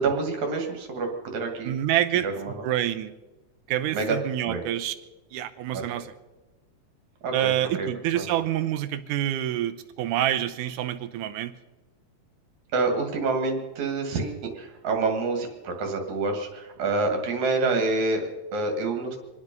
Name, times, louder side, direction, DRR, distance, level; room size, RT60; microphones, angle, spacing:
voice 1, 0.0-1.7 2.2-2.6 3.9-4.2 4.5-4.7 5.7-6.0 7.2-7.5 7.8-7.9 8.1-8.3 12.7-19.2, right 3 dB, 70° right, 3 dB, 3.5 m, -27 dB
voice 2, 1.6-3.1 3.7-4.9 5.3-6.1 7.3-11.6 17.6-17.8, right 12 dB, 85° right, 10 dB, 2.3 m, -27 dB
27.0 x 9.8 x 5.4 m, 1.1 s
omnidirectional pair, 3.6 m